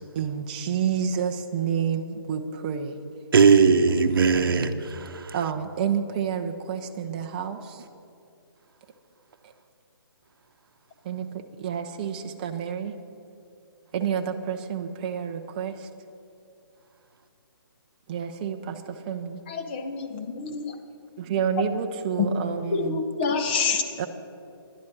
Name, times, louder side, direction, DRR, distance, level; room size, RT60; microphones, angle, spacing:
voice 1, 0.1-3.0 3.7-3.8 4.3-4.8 5.3-7.8 9.4-9.5 11.0-12.9 13.9-15.9 18.1-19.4 21.2-23.0 24.0-24.1, right 7 dB, 20° right, 5 dB, 0.6 m, -29 dB
voice 2, 3.3-5.3, right 5 dB, 60° right, 8 dB, 0.9 m, -19 dB
voice 3, 19.5-20.7 22.7-23.8, left 4 dB, 25° left, 6 dB, 0.8 m, -27 dB
11.5 x 11.0 x 5.9 m, 2.5 s
hypercardioid pair, 165°, 13 cm